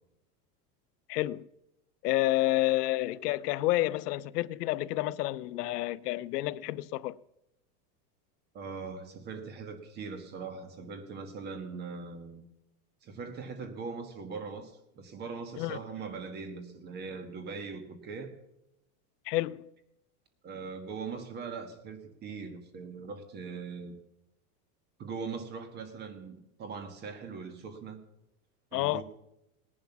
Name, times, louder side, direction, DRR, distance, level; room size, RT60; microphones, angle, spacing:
voice 1, 1.1-1.5 2.0-7.2 15.6-15.8 19.3-19.7 28.7-29.0, left 16 dB, 85° left, 0.7 m, -29 dB
voice 2, 8.5-12.4 13.0-18.3 20.4-23.9 25.0-28.0 28.7-29.0, right 5 dB, 20° right, 1.5 m, -41 dB
18.5 x 11.0 x 5.9 m
supercardioid pair, 175°, 46 cm